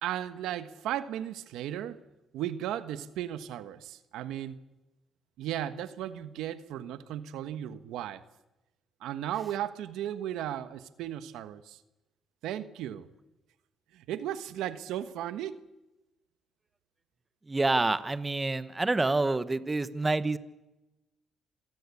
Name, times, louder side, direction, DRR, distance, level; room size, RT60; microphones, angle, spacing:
voice 1, 0.0-2.0 2.3-4.6 5.4-8.2 9.0-11.8 12.4-13.1 13.9-15.6, right 11 dB, 90° right, 12 dB, 1.3 m, -35 dB
voice 2, 17.5-20.4, right 2 dB, 20° right, 14 dB, 1.4 m, -27 dB
27.0 x 19.5 x 8.5 m, 0.98 s
cardioid pair, 90°, 0 cm